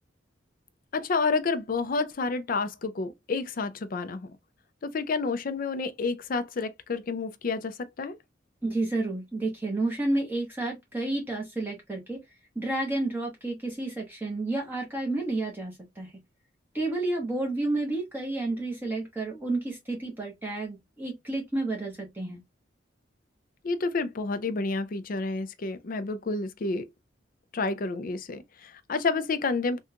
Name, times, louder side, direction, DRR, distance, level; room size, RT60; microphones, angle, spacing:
voice 1, 0.9-4.4 4.8-8.2 23.6-26.9 27.5-29.8, left 4 dB, 45° left, 0.4 m, -29 dB
voice 2, 8.6-12.2 12.5-16.1 16.7-22.4, right 2 dB, 10° right, 0.9 m, -30 dB
3.6 x 2.3 x 2.7 m
head